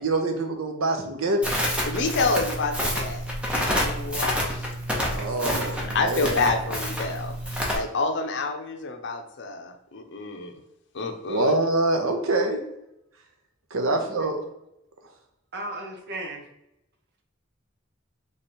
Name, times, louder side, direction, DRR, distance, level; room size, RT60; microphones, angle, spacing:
voice 1, 0.0-1.4 5.1-6.4 11.3-12.6 13.7-14.4, right 2 dB, 85° right, 4 dB, 0.8 m, -25 dB
Crackle, 1.4-7.7, equal, 5° right, 1.0 m, -28 dB
voice 2, 1.9-3.3 3.6-4.7 5.0-5.2 5.5-7.4 7.7-10.5 10.9-11.5, left 3 dB, 60° left, 5 dB, 0.7 m, -28 dB
voice 3, 13.9-14.3 15.5-16.4, right 1 dB, 55° right, 3 dB, 0.9 m, -36 dB
3.5 x 3.2 x 4.2 m, 0.84 s
head